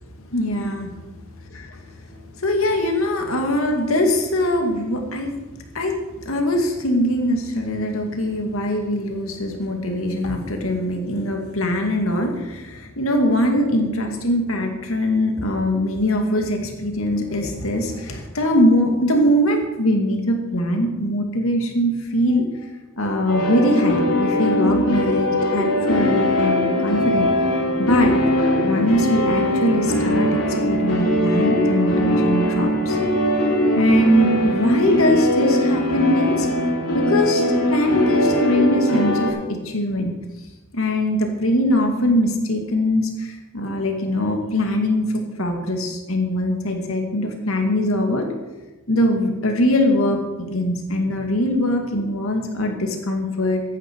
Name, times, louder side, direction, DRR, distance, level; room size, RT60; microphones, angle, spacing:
voice 1, 0.3-0.9 2.0-5.4 5.7-6.0 6.2-22.7 23.0-27.3 27.8-28.1 28.6-33.0 33.7-36.5 36.9-37.4 37.7-40.1 40.7-48.3 48.9-53.6, left 1 dB, 70° left, 3 dB, 2.4 m, -22 dB
sound 1, 23.3-39.3, left 1 dB, 90° left, 5.1 m, -21 dB
15.0 x 10.0 x 4.8 m, 1.1 s
head